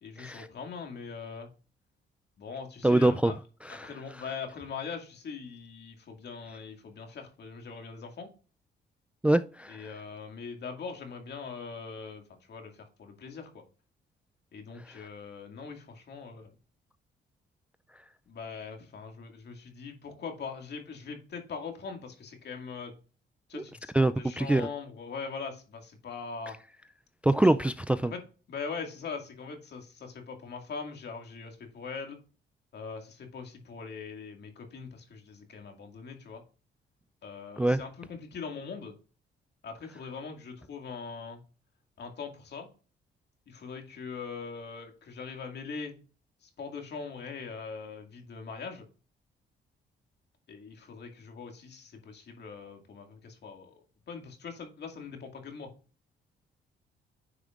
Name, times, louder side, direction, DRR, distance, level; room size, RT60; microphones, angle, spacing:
voice 1, 0.0-1.5 2.4-3.3 3.7-8.3 9.7-13.6 14.5-16.5 18.3-22.9 23.5-26.6 27.4-27.5 28.0-28.2 28.5-32.2 32.7-36.4 37.2-39.0 39.6-41.4 42.0-42.7 43.5-46.0 46.4-48.9 50.5-53.7 54.1-55.7, left 5 dB, 55° left, 2.1 m, -41 dB
voice 2, 2.8-3.3 3.7-3.9 9.2-9.8 23.5-23.6 23.9-24.7 27.2-28.1 37.6-37.8, right 1 dB, 5° right, 0.3 m, -24 dB
9.6 x 5.0 x 2.5 m
cardioid pair, 90°, 20 cm